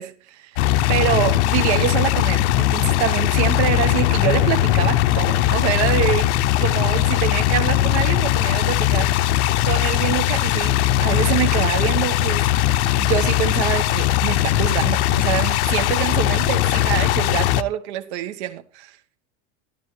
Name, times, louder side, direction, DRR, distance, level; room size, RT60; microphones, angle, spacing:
voice 1, 0.0-6.3 6.6-9.1 9.6-18.9, right 12 dB, 75° right, 1.3 m, -25 dB
sound 1, 0.6-17.6, left 14 dB, 80° left, 0.7 m, -19 dB
12.5 x 12.5 x 3.2 m
supercardioid pair, 145°, 33 cm